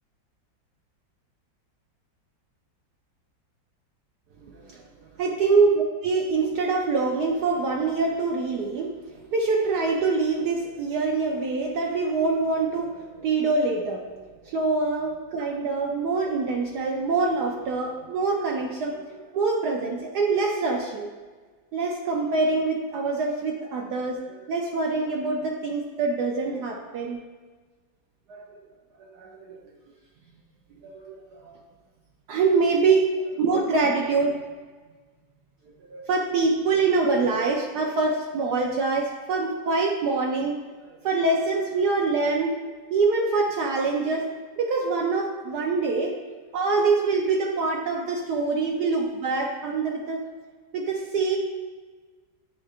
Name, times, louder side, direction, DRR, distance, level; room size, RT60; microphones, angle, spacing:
voice 1, 4.4-4.8 5.2-8.9 9.2-21.1 21.7-24.2 24.5-27.2 28.3-28.4 29.1-29.6 30.9-31.6 32.3-33.1 33.4-34.4 35.9-40.6 41.0-42.5 42.9-46.1 46.5-50.2 50.7-51.4, right 4 dB, 70° right, 0 dB, 1.0 m, -25 dB
9.5 x 4.5 x 2.4 m, 1.4 s
omnidirectional pair, 2.0 m